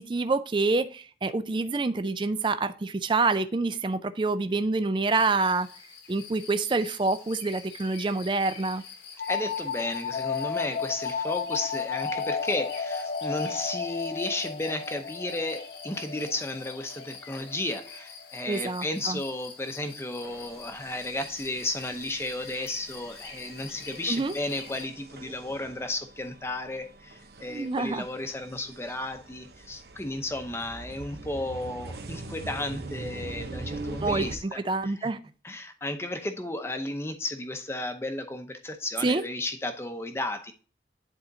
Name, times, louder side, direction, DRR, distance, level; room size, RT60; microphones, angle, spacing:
voice 1, 0.0-5.7 6.1-8.8 18.5-19.2 24.1-24.3 27.5-28.0 34.0-34.3 34.7-35.2 39.0-39.2, right 3 dB, 25° right, 0.3 m, -27 dB
sound 1, 5.1-24.9, left 6 dB, 80° left, 1.3 m, -46 dB
sound 2, 9.2-18.6, left 5 dB, 45° left, 0.7 m, -33 dB
voice 2, 9.3-35.1 35.4-40.5, left 2 dB, 15° left, 0.7 m, -33 dB
sound 3, 20.2-34.4, right 2 dB, 65° right, 0.8 m, -43 dB
10.5 x 4.3 x 2.7 m
head